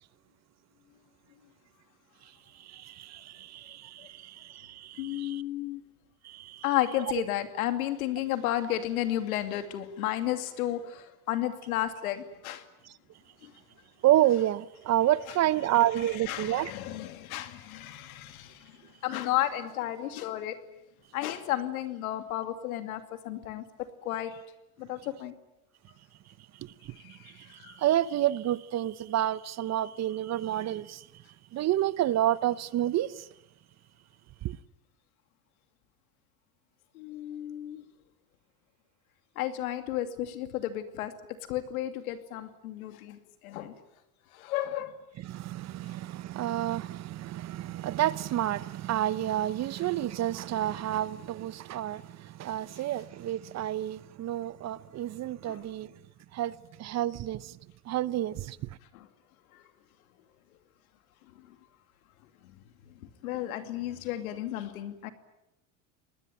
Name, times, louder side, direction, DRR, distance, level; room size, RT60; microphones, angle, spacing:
voice 1, 2.6-5.4 6.2-6.6 12.8-12.9 14.0-16.7 26.6-31.1 31.5-33.3 34.4-34.6 45.2-55.9 56.3-57.6 57.9-58.7, right 13 dB, 40° right, 0.9 m, -29 dB
voice 2, 5.0-5.8 6.6-12.6 13.4-13.5 16.3-18.7 19.0-20.5 21.1-23.6 24.0-24.3 24.8-25.3 27.6-27.8 36.9-37.8 39.4-41.1 41.5-43.2 43.4-43.8 44.3-45.0 55.5-55.6 58.9-59.1 59.5-59.6 63.2-65.1, left 13 dB, 85° left, 2.7 m, -32 dB
26.0 x 20.0 x 9.3 m
supercardioid pair, 110°, 42 cm